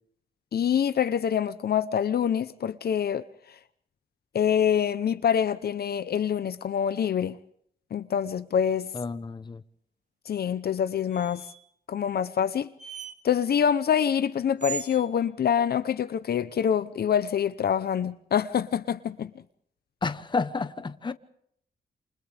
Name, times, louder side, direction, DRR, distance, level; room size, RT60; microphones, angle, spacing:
voice 1, 0.5-3.2 4.3-7.4 7.9-8.9 10.3-11.4 11.9-12.7 13.2-19.3, left 8 dB, 60° left, 0.8 m, -25 dB
voice 2, 8.9-9.6 20.0-21.1, left 4 dB, 25° left, 1.0 m, -30 dB
sound 1, 11.1-11.7 12.8-13.1 14.6-15.1, right 7 dB, 40° right, 1.9 m, -37 dB
29.0 x 28.0 x 3.5 m
wide cardioid pair, 150°, 18 cm